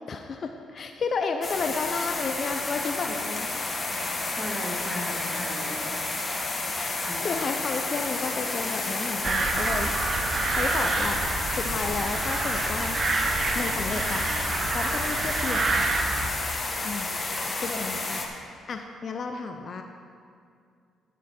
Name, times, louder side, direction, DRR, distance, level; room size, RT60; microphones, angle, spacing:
voice 1, 0.1-3.5 6.7-7.0 7.2-9.9 10.5-11.2 11.5-13.2 13.5-14.3 14.7-15.9 16.8-17.1 17.6-18.2 18.7-19.8, left 4 dB, 50° left, 5 dB, 0.6 m, -32 dB
sound 1, 1.4-18.3, left 2 dB, 30° left, 1.4 m, -31 dB
voice 2, 4.3-5.9 7.0-7.3, left 1 dB, 5° right, -1 dB, 1.9 m, -36 dB
sound 2, 9.2-16.3, right 3 dB, 40° right, 0.9 m, -28 dB
12.5 x 7.4 x 4.3 m, 2.3 s
cardioid pair, 90°, 0 cm